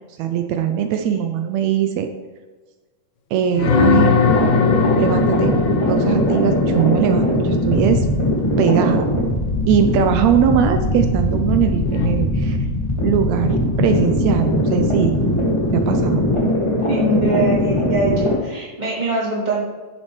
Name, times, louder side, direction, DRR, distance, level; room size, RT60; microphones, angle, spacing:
voice 1, 0.2-2.1 3.3-4.1 5.0-5.5 5.9-8.1 8.6-9.1 9.7-12.6 13.0-15.2 15.7-16.2, right 9 dB, 90° right, 7 dB, 1.5 m, -20 dB
sound 1, 3.5-7.4 11.9-12.1, left 5 dB, 75° left, 2.3 m, -19 dB
sound 2, 4.2-18.3, left 1 dB, 15° left, 0.9 m, -20 dB
voice 2, 16.9-19.6, right 2 dB, 15° right, -6 dB, 2.5 m, -23 dB
10.5 x 7.5 x 3.2 m, 1.4 s
omnidirectional pair, 3.7 m